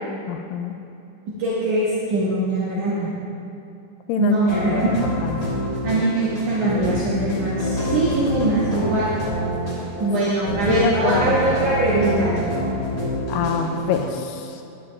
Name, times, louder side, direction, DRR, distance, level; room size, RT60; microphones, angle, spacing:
voice 1, 0.3-0.8 4.1-4.4 4.7-4.8 5.2-5.3 10.3-10.4 10.7-11.4 13.3-14.6, left 7 dB, 85° left, 5 dB, 2.3 m, -25 dB
voice 2, 1.4-3.1 4.2-4.9 5.8-9.2 10.0-12.3, right 2 dB, 65° right, -9 dB, 3.0 m, -21 dB
sound 1, 4.5-14.0, equal, 35° left, 2.2 m, -27 dB
12.5 x 11.0 x 3.5 m, 2.7 s
omnidirectional pair, 4.1 m